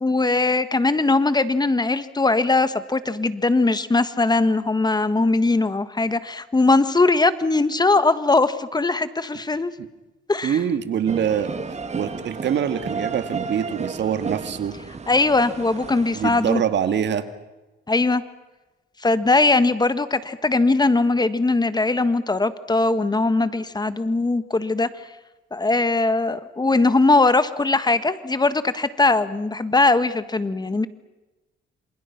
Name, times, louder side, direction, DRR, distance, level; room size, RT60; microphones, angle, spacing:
voice 1, 0.0-9.7 10.3-10.6 15.1-16.6 17.9-18.2 19.0-24.9 25.5-30.9, left 3 dB, 20° left, 12 dB, 1.6 m, -20 dB
voice 2, 10.4-11.5 11.9-14.7 16.1-17.3, right 8 dB, 65° right, 10 dB, 2.2 m, -24 dB
sound 1, 11.1-16.6, right 5 dB, 35° right, 2.4 m, -33 dB
27.5 x 27.5 x 6.0 m, 1.1 s
cardioid pair, 90°, 20 cm